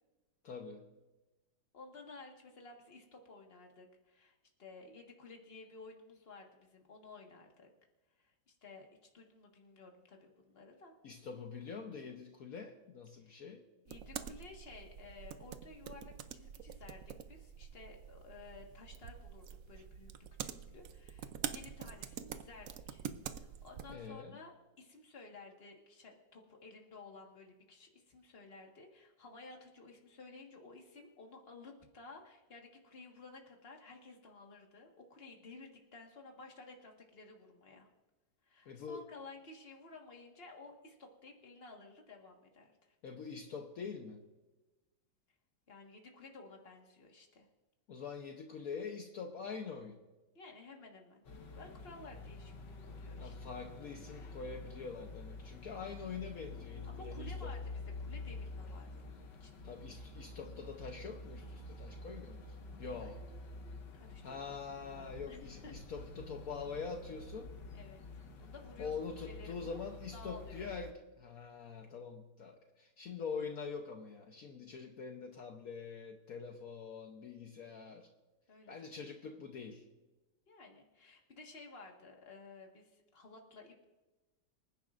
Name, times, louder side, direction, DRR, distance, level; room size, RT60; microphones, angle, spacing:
voice 1, 0.4-0.9 11.0-13.6 23.9-24.4 38.7-39.0 43.0-44.2 47.9-50.0 53.2-57.5 59.6-62.4 62.8-63.2 64.2-67.6 68.8-78.1 78.7-79.8, left 5 dB, 60° left, 4 dB, 1.2 m, -44 dB
voice 2, 1.7-7.7 8.2-10.9 13.2-13.5 13.8-20.1 20.4-23.0 23.3-37.9 38.4-43.0 45.7-47.5 50.3-51.2 51.5-53.3 56.8-59.1 59.4-59.7 62.9-63.1 63.9-64.4 64.9-65.7 67.7-68.9 69.3-69.7 70.1-70.7 78.5-79.3 80.5-83.9, left 3 dB, 35° left, 1 dB, 1.8 m, -54 dB
sound 1, 13.9-24.0, right 8 dB, 65° right, 0.9 m, -46 dB
sound 2, 51.3-70.9, left 3 dB, 90° left, 1.9 m, -48 dB
25.5 x 10.5 x 2.5 m, 1.1 s
omnidirectional pair, 1.9 m